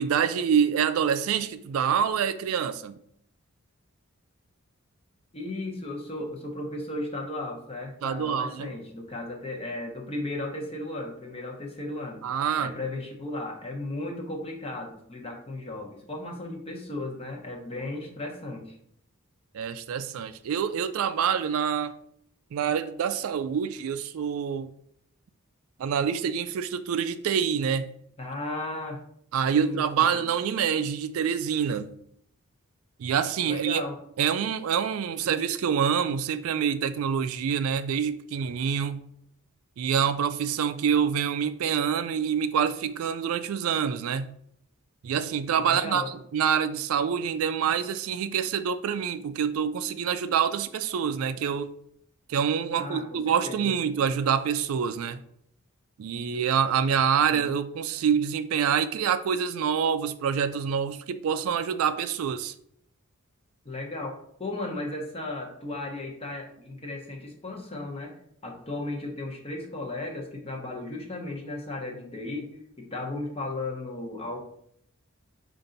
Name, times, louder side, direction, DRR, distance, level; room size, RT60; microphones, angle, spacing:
voice 1, 0.0-3.0 8.0-8.7 12.2-12.7 19.5-21.9 22.5-24.7 25.8-27.9 29.3-31.9 33.0-33.8 34.2-39.0 39.8-44.3 45.0-51.7 52.3-55.2 56.0-62.5, right 7 dB, 75° right, 0.3 m, -26 dB
voice 2, 5.3-12.2 12.6-18.8 28.2-29.0 29.6-30.2 33.4-34.0 45.6-46.1 52.7-53.7 57.3-57.5 63.6-68.1 68.4-72.5 72.8-74.4, left 2 dB, 25° left, 0.9 m, -35 dB
5.3 x 2.6 x 3.9 m
head